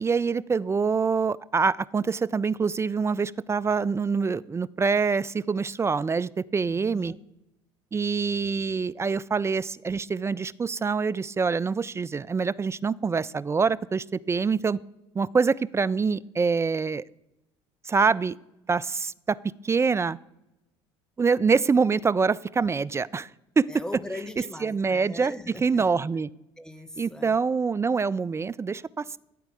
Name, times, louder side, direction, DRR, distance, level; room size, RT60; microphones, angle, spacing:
voice 1, 0.0-7.1 7.9-14.8 15.2-17.0 17.9-18.4 18.7-19.4 19.6-20.2 21.2-23.3 23.6-23.7 24.6-25.3 25.6-26.3 27.0-29.2, right 5 dB, 20° right, 17 dB, 0.3 m, -25 dB
voice 2, 6.7-7.2 23.7-25.9 26.6-27.4, left 1 dB, 5° left, 11 dB, 1.0 m, -40 dB
13.0 x 4.6 x 8.4 m, 0.89 s
hypercardioid pair, 60°, 15 cm